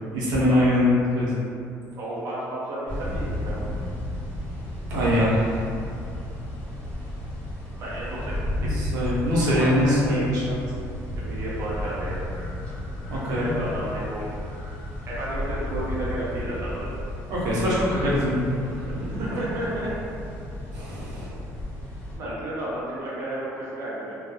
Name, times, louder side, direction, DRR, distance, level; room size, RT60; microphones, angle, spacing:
voice 1, 0.1-1.3 4.9-5.6 8.7-10.6 13.1-13.5 17.3-18.9 19.3-19.4 20.7-21.3, left 1 dB, 90° right, -7 dB, 0.7 m, -23 dB
voice 2, 1.9-3.7 7.8-8.7 9.5-10.3 11.1-12.2 13.3-14.2 15.0-16.9 19.0-19.9 22.1-24.2, right 1 dB, 45° right, -7 dB, 0.6 m, -32 dB
sound 1, 2.9-22.2, left 1 dB, 25° left, 0.9 m, -33 dB
2.2 x 2.2 x 3.0 m, 2.5 s
cardioid pair, 150°, 6 cm